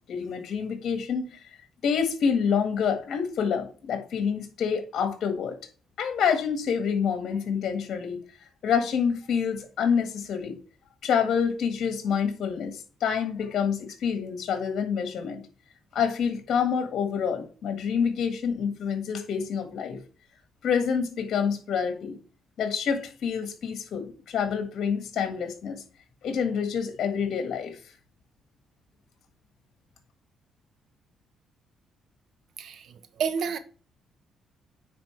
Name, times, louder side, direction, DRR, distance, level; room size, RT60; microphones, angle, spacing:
voice 1, 0.1-1.2 1.8-5.6 6.0-8.2 8.6-10.6 11.0-15.4 15.9-20.0 20.6-22.2 22.6-25.8 26.2-27.8, left 7 dB, 65° left, 1.6 m, -27 dB
voice 2, 32.6-33.6, right 6 dB, 65° right, 1.0 m, -30 dB
9.5 x 4.1 x 3.3 m
cardioid pair, 100°, 0 cm